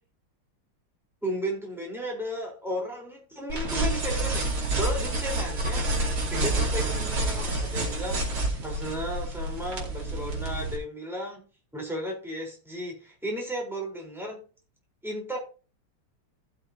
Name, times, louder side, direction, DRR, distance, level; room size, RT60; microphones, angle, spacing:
voice 1, 1.2-5.9 6.3-8.3 8.6-11.5 11.7-14.4 15.0-15.4, equal, ahead, -1 dB, 4.1 m, -34 dB
sound 1, 3.5-10.8, right 2 dB, 70° right, 3.5 m, -28 dB
15.5 x 6.9 x 2.9 m, 0.34 s
omnidirectional pair, 2.4 m